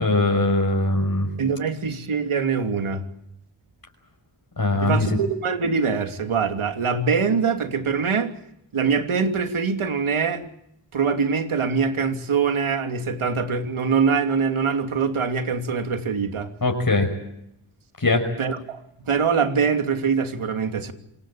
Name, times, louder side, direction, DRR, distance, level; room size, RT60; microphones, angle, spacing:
voice 1, 0.0-1.3 4.6-5.1 16.6-17.1 18.0-18.3, left 2 dB, 45° left, 5.5 m, -21 dB
voice 2, 1.4-3.1 4.8-8.4 8.7-10.5 10.9-16.5 18.4-20.9, right 5 dB, 80° right, 3.0 m, -23 dB
27.0 x 18.0 x 8.7 m
cardioid pair, 40°, 50 cm